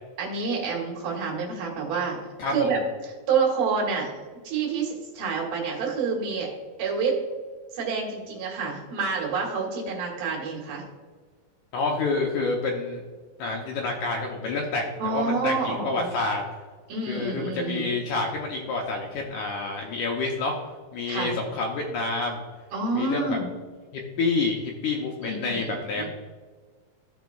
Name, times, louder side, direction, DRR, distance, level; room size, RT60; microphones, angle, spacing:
voice 1, 0.2-2.2 2.5-4.1 4.5-6.5 6.8-7.2 7.7-10.8 15.0-16.1 16.9-17.9 21.1-21.4 22.7-23.5 25.2-26.1, right 4 dB, 80° right, -2 dB, 3.6 m, -28 dB
voice 2, 2.4-2.7 11.7-13.0 13.4-16.4 17.1-20.6 20.9-22.4 22.9-23.4 23.9-26.1, left 3 dB, 75° left, 0 dB, 1.9 m, -28 dB
15.5 x 5.2 x 2.3 m, 1.5 s
omnidirectional pair, 4.3 m